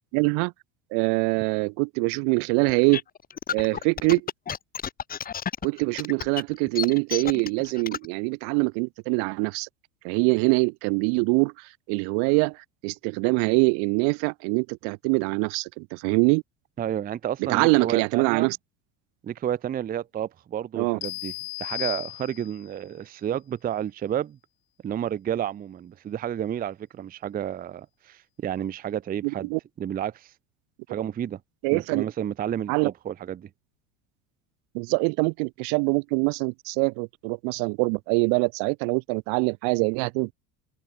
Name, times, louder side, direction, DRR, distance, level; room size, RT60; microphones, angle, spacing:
voice 1, 0.1-0.5 0.9-3.0 3.5-4.3 5.6-9.7 10.0-16.4 17.4-18.6 20.7-21.0 29.2-29.6 31.6-32.0 32.7-32.9 34.7-40.3, right 40 dB or more, 65° right, 0.8 m, -24 dB
sound 1, 2.7-8.1, left 8 dB, 20° left, 0.7 m, -31 dB
voice 2, 16.8-18.5 19.2-21.3 21.6-24.4 24.8-29.5 29.8-30.3 30.9-31.4 31.7-33.5, right 10 dB, 20° right, 0.5 m, -31 dB
sound 2, 21.0-22.7, left 25 dB, 65° left, 3.6 m, -35 dB
open air
hypercardioid pair, 90°, 42 cm